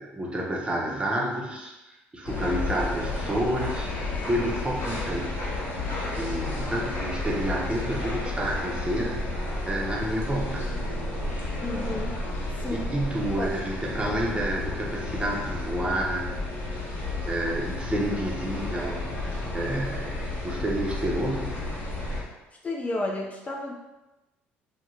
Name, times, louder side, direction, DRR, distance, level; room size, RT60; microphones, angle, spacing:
voice 1, 0.0-5.4 6.2-10.7 12.9-16.3 17.3-21.6, right 1 dB, 20° right, -2 dB, 0.7 m, -30 dB
sound 1, 2.3-22.2, left 2 dB, 45° left, 0.9 m, -32 dB
voice 2, 11.6-12.2 12.6-12.9 13.4-13.5 22.6-23.7, left 2 dB, 30° left, -1 dB, 0.4 m, -31 dB
2.4 x 2.2 x 3.0 m, 1.0 s
hypercardioid pair, 65°, 5 cm